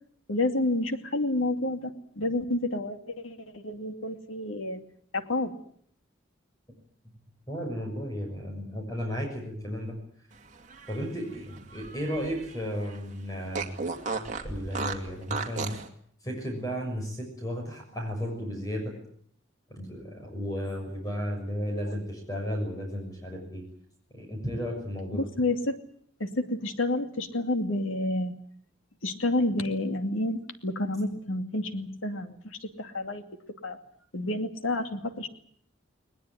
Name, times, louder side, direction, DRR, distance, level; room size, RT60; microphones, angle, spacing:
voice 1, 0.3-4.8 5.1-5.5 25.1-25.8 26.2-28.3 29.0-33.2 33.6-33.8 34.1-35.3, left 2 dB, 80° left, 7 dB, 2.5 m, -29 dB
voice 2, 7.5-10.0 10.9-13.8 14.4-15.7 16.2-18.9 19.7-23.6 24.1-25.3, equal, 20° left, 2 dB, 6.5 m, -34 dB
Fart, 10.5-12.6 12.9-13.0 13.5-15.9, right 4 dB, 40° right, 2.4 m, -35 dB
20.5 x 20.5 x 9.5 m, 0.63 s
head